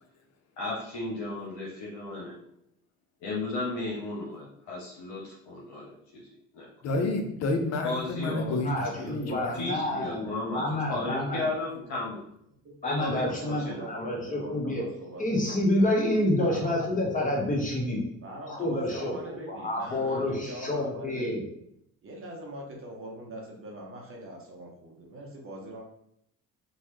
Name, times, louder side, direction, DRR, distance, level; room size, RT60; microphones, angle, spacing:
voice 1, 0.6-2.4 3.2-6.2 6.5-6.7 7.8-8.6 9.0-9.2 9.5-12.2 12.8-13.9, left 2 dB, 75° left, -4 dB, 0.8 m, -34 dB
voice 2, 6.8-9.7, left 2 dB, 45° left, 4 dB, 0.7 m, -30 dB
voice 3, 8.6-10.3 10.5-11.5 12.8-14.8 15.2-18.0 18.5-21.4, left 1 dB, 20° left, -2 dB, 1.1 m, -28 dB
voice 4, 13.2-15.5 16.4-16.7 18.2-21.4 22.0-25.8, right 1 dB, 35° right, -1 dB, 0.9 m, -42 dB
3.2 x 2.3 x 3.0 m, 0.74 s
hypercardioid pair, 65°, 37 cm